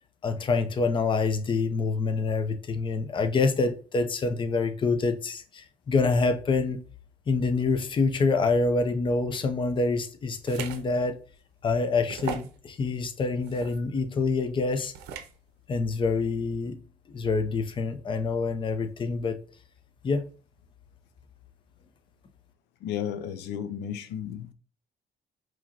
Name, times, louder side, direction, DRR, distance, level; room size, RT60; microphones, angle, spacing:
voice 1, 0.2-6.8 7.3-11.2 11.6-14.9 15.7-16.8 17.1-19.4 20.0-20.2, left 4 dB, 30° left, 0.6 m, -26 dB
sound 1, 10.4-10.8 11.3-11.4 12.1-12.6 13.4-13.8 14.9-15.3, right 7 dB, 80° right, 0.6 m, -37 dB
voice 2, 22.8-24.5, left 9 dB, 80° left, 0.5 m, -33 dB
4.8 x 2.9 x 2.8 m
cardioid pair, 110°, 17 cm